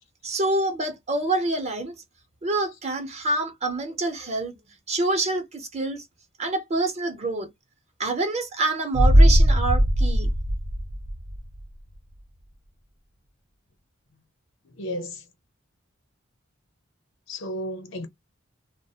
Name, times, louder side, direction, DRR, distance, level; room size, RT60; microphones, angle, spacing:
voice 1, 0.2-1.9 2.4-4.5 4.9-6.0 6.4-7.5 8.0-10.3, right 2 dB, 35° right, 0.7 m, -26 dB
sound 1, 8.9-11.6 11.9-12.0, equal, 70° right, 0.7 m, -19 dB
voice 2, 14.6-15.2 17.3-18.1, equal, 80° left, 0.8 m, -33 dB
2.4 x 2.1 x 2.7 m
head